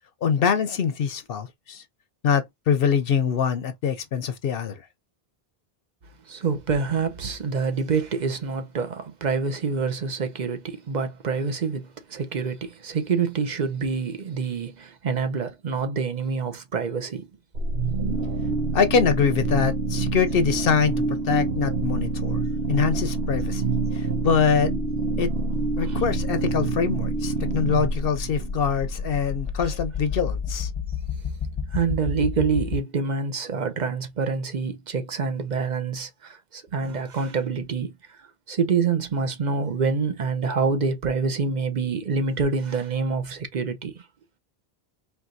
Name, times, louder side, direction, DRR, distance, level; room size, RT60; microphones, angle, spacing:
voice 1, 0.2-1.8 2.2-4.8 18.7-22.4 22.7-24.7 25.2-25.3 25.8-30.7, left 6 dB, 70° left, 0.8 m, -24 dB
voice 2, 6.3-17.3 25.8-26.0 31.7-44.0, right 5 dB, 50° right, 0.9 m, -26 dB
sound 1, 17.5-29.3, right 3 dB, 85° right, 1.2 m, -26 dB
sound 2, 27.2-32.8, left 5 dB, 35° left, 0.8 m, -31 dB
4.6 x 3.3 x 2.5 m
omnidirectional pair, 1.0 m